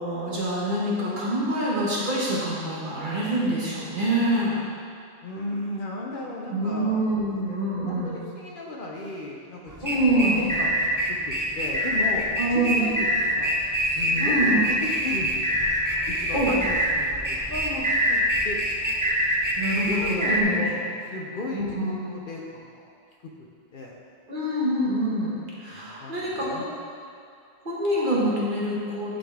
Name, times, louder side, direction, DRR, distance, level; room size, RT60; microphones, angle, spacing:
voice 1, 0.0-4.6 6.5-8.2 9.8-10.5 12.4-12.9 14.2-14.7 16.3-16.5 19.6-20.7 21.5-21.9 24.3-26.7 27.6-29.2, right 1 dB, 45° right, -7 dB, 1.5 m, -26 dB
voice 2, 5.2-7.3 7.8-9.9 10.1-12.2 12.5-12.9 13.3-13.5 13.8-15.6 16.1-18.7 19.8-22.9 23.7-24.0 25.7-26.6, left 2 dB, 55° left, -2 dB, 0.8 m, -35 dB
sound 1, 9.7-20.4, equal, 20° right, 0.6 m, -25 dB
10.0 x 3.9 x 3.5 m, 2.3 s
omnidirectional pair, 1.2 m